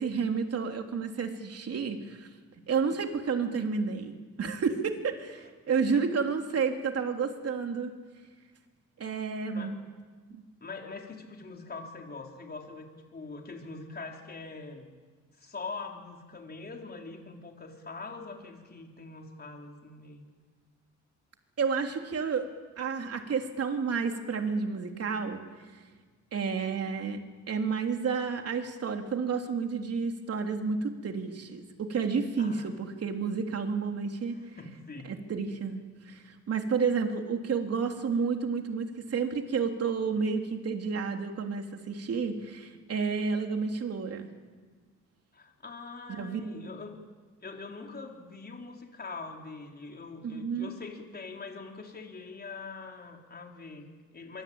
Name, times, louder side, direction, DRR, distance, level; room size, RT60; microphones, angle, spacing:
voice 1, 0.0-2.3 2.7-7.9 9.0-9.7 10.3-10.4 21.6-22.5 22.8-25.4 26.3-27.2 27.5-34.4 35.0-35.8 36.1-44.3 46.1-46.6 50.2-50.7, right 5 dB, 55° right, 4 dB, 3.5 m, -31 dB
voice 2, 10.6-14.9 15.4-20.3 32.4-32.7 34.3-35.2 45.3-47.0 47.4-54.4, left 4 dB, 30° left, 2 dB, 4.3 m, -43 dB
24.0 x 24.0 x 8.9 m, 1.5 s
cardioid pair, 90°, 30 cm